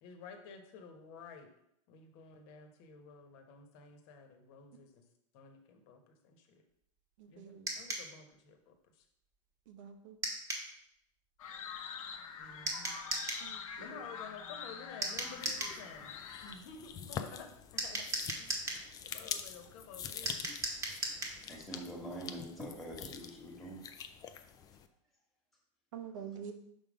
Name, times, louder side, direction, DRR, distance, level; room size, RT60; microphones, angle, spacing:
voice 1, 0.0-1.5 1.9-5.0 5.3-6.6 7.3-9.0 12.4-13.0 13.8-16.1 16.4-18.1 18.3-18.6 19.0-20.5, left 5 dB, 50° left, 5 dB, 1.2 m, -52 dB
voice 2, 7.2-7.7 9.7-10.2 13.4-14.1 25.9-26.5, right 8 dB, 70° right, 6 dB, 1.0 m, -47 dB
sound 1, 7.7-8.1 10.2-10.7 12.7-13.5 15.0-15.8 17.8-18.8 20.3-21.4, right 2 dB, 20° right, 1.2 m, -37 dB
sound 2, 11.4-16.6, left 7 dB, 80° left, 0.8 m, -45 dB
sound 3, 15.2-24.9, left 8 dB, 20° left, 0.4 m, -46 dB
voice 3, 21.5-23.8, right 1 dB, ahead, -2 dB, 1.4 m, -44 dB
6.0 x 3.6 x 5.1 m, 0.75 s
supercardioid pair, 135°, 17 cm